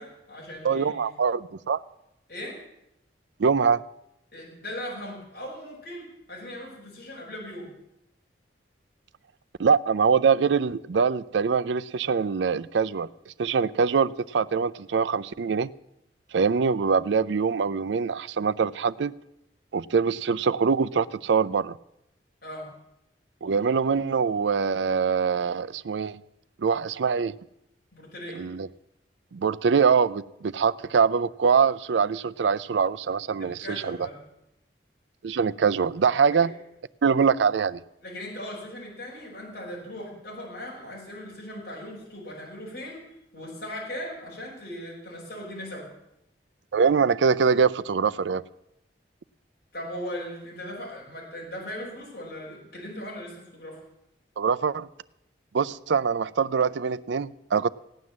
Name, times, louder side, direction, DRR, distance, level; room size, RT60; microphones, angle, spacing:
voice 1, 0.0-1.1 2.3-2.6 4.3-7.7 22.4-22.7 27.9-28.4 33.4-34.2 38.0-43.0 43.3-45.9 49.7-53.8, equal, 55° left, 5.2 m, -38 dB
voice 2, 0.6-1.8 3.4-3.8 9.6-15.7 16.3-19.1 19.7-21.8 23.4-26.2 26.6-27.3 28.3-28.7 29.3-34.0 35.2-36.5 37.0-37.8 46.7-48.4 54.4-54.9 55.5-57.7, right 6 dB, 90° right, 0.5 m, -23 dB
16.0 x 9.6 x 7.4 m
head